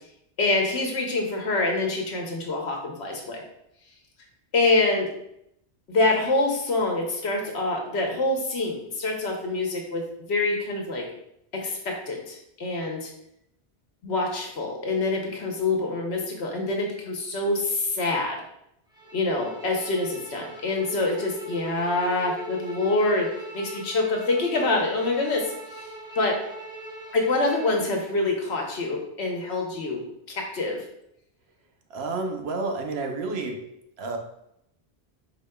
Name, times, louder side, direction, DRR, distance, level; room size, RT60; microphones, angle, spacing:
voice 1, 0.4-3.4 4.5-5.1 5.9-10.0 10.3-11.0 11.5-13.1 14.0-18.4 19.1-23.3 23.5-25.5 25.7-25.9 26.2-26.4 27.1-30.0 30.3-30.8, left 2 dB, 75° left, 1 dB, 1.1 m, -26 dB
Bowed string instrument, 18.9-28.0, right 1 dB, 5° right, 0.5 m, -41 dB
voice 2, 31.9-33.6 34.0-34.2, right 3 dB, 70° right, 4 dB, 0.9 m, -30 dB
5.0 x 4.2 x 2.2 m, 0.78 s
omnidirectional pair, 1.1 m